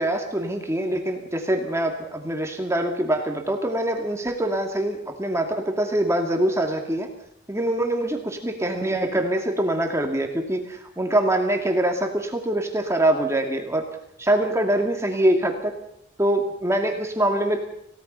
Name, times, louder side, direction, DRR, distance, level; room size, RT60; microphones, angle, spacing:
voice 1, 0.0-7.1 7.5-8.2 8.4-13.9 14.2-15.8 16.2-17.6, right 1 dB, 15° right, 3 dB, 2.4 m, -24 dB
27.5 x 17.0 x 5.6 m, 0.75 s
head